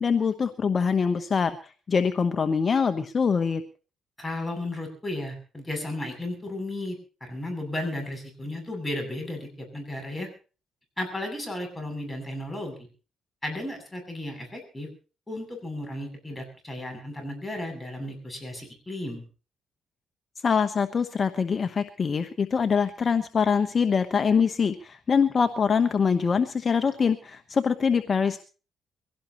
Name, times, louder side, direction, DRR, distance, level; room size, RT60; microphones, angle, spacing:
voice 1, 0.0-3.6 20.4-28.4, left 6 dB, 40° left, 8 dB, 1.1 m, -24 dB
voice 2, 4.2-10.3 11.0-12.8 13.4-14.9 15.3-19.2, left 1 dB, 10° left, 2 dB, 7.9 m, -34 dB
23.5 x 17.0 x 3.0 m, 0.36 s
cardioid pair, 90°, 0 cm